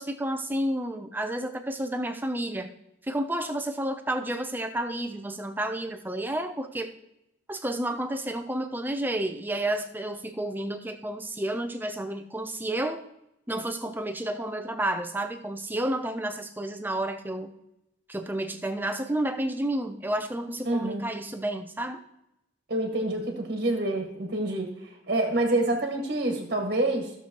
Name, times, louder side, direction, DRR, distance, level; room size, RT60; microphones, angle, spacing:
voice 1, 0.0-2.7 3.1-6.9 7.5-13.0 13.5-17.5 18.1-22.0, right 1 dB, 10° right, 7 dB, 0.6 m, -31 dB
voice 2, 20.6-21.1 22.7-27.1, right 2 dB, 50° right, 2 dB, 1.5 m, -27 dB
15.0 x 6.9 x 3.0 m, 0.84 s
head